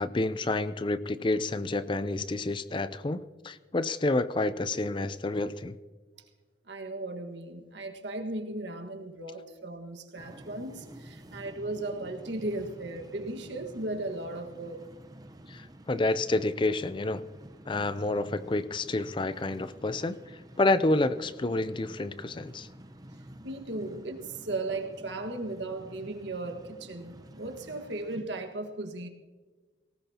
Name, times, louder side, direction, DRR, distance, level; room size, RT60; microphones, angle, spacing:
voice 1, 0.0-5.8 15.5-17.2 17.7-22.7, left 2 dB, 25° left, 13 dB, 0.5 m, -29 dB
voice 2, 6.7-14.9 23.4-29.1, right 2 dB, 75° right, 5 dB, 1.6 m, -36 dB
sound 1, 10.2-28.2, right 1 dB, 20° right, 0.8 m, -50 dB
19.0 x 18.5 x 2.9 m, 1.4 s
head